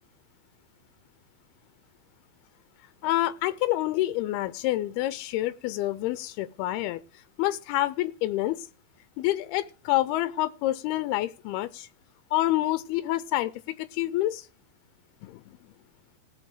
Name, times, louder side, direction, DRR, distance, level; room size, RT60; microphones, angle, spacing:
voice 1, 3.0-7.0 7.4-8.7 9.2-11.9 12.3-13.5 13.8-14.5 15.2-15.6, left 15 dB, 90° left, 2.7 m, -27 dB
17.0 x 6.7 x 4.9 m
omnidirectional pair, 4.4 m